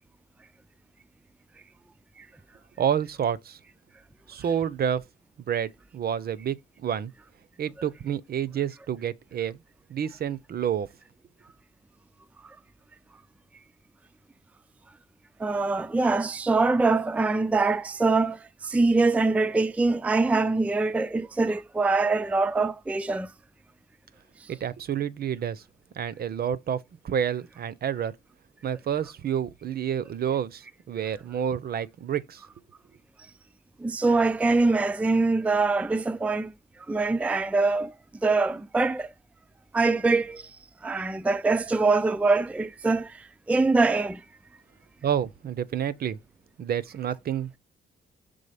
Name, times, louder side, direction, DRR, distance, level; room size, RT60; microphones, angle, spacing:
voice 1, 2.8-3.6 4.3-5.0 5.4-7.1 7.6-9.6 9.9-10.9 24.5-25.6 26.0-28.1 28.6-32.4 45.0-46.2 46.6-47.5, right 9 dB, 50° right, 0.6 m, -29 dB
voice 2, 15.4-23.3 33.8-36.5 36.9-37.9 38.2-39.1 39.7-40.4 40.8-43.1 43.5-44.2, right 3 dB, 5° right, 0.4 m, -23 dB
5.5 x 3.7 x 5.0 m
cardioid pair, 90°, 20 cm